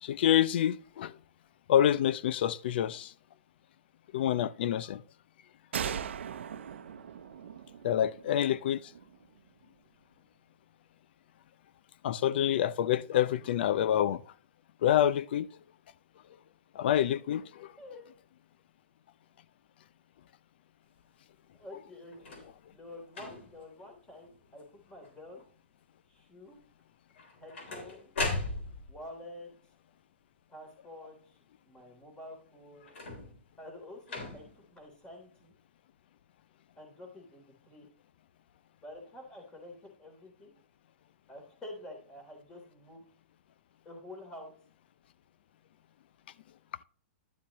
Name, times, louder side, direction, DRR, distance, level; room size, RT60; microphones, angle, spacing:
voice 1, 0.0-1.1 1.7-3.1 4.1-5.0 7.8-8.8 12.0-14.2 14.8-15.5 16.8-17.7, left 11 dB, 60° left, 0.5 m, -27 dB
sound 1, 5.7-9.3, right 8 dB, 90° right, 0.7 m, -39 dB
voice 2, 17.8-18.1 21.5-25.4 26.1-26.6 27.4-28.1 28.9-29.5 30.5-31.4 31.7-32.9 33.6-35.5 36.8-37.9 38.8-40.5 41.3-43.0 43.8-44.5, left 1 dB, 15° left, 3.4 m, -48 dB
sound 2, 22.1-22.5 23.1-23.6 24.2-24.6 24.9-25.4 27.1-29.0 32.8-33.5 34.1-34.6 35.5-35.6, left 2 dB, 80° left, 3.5 m, -38 dB
11.5 x 7.3 x 3.0 m
hypercardioid pair, 150°, 6 cm